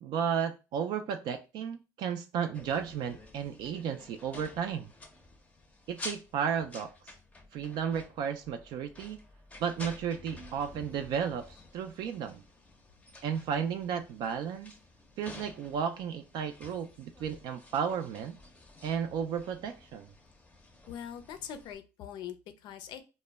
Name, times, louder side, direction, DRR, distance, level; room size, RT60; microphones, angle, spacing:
voice 1, 0.0-4.9 5.9-6.9 7.5-9.2 9.6-12.4 13.2-14.7 15.2-18.4 18.8-20.1, right 7 dB, 65° right, 6 dB, 0.3 m, -33 dB
sound 1, 2.5-21.8, left 2 dB, 15° left, 0.5 m, -51 dB
voice 2, 20.9-23.0, left 9 dB, 65° left, 9 dB, 0.5 m, -42 dB
2.1 x 2.0 x 3.3 m, 0.29 s
supercardioid pair, 85°, 8 cm